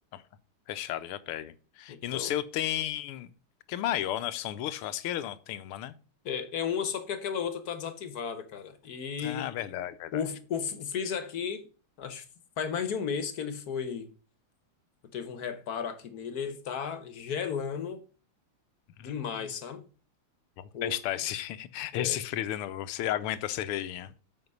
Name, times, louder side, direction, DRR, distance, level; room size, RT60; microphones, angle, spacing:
voice 1, 0.7-3.3 3.7-5.9 9.2-10.2 19.0-19.2 20.6-24.1, left 12 dB, 85° left, 1.6 m, -33 dB
voice 2, 1.9-2.4 6.2-9.5 10.1-11.7 12.0-12.2 12.6-14.1 15.1-18.0 19.0-19.8 20.7-20.9 21.9-22.2, left 7 dB, 55° left, 1.2 m, -34 dB
7.9 x 5.6 x 5.3 m
omnidirectional pair, 2.4 m